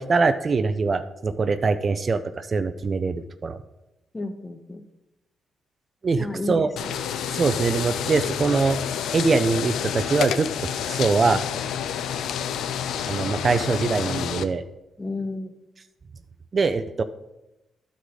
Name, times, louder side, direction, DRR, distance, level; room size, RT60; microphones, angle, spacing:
voice 1, 0.0-3.6 6.0-6.7 7.3-8.8 9.1-11.4 13.0-14.6 16.5-17.0, right 4 dB, 40° right, 10 dB, 0.4 m, -23 dB
voice 2, 4.1-4.8 6.2-7.0 15.0-15.5, left 2 dB, 20° left, 8 dB, 0.8 m, -32 dB
sound 1, 6.8-14.4, left 8 dB, 85° left, 0.4 m, -29 dB
11.5 x 4.8 x 3.9 m, 0.94 s
cardioid pair, 105°, 0 cm